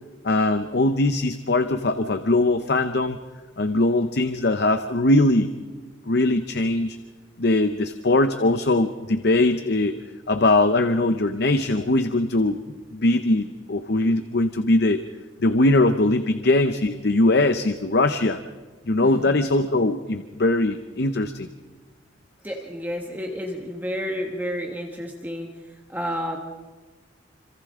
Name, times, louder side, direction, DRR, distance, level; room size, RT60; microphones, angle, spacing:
voice 1, 0.2-3.2 3.6-5.5 6.1-7.0 7.4-10.0 10.3-12.6 12.9-15.0 15.4-18.4 18.9-21.5, left 2 dB, 55° left, 9 dB, 0.8 m, -21 dB
voice 2, 19.0-19.4 22.4-25.5 25.9-26.4, equal, 10° right, 1 dB, 1.4 m, -30 dB
26.5 x 26.5 x 3.7 m, 1.4 s
head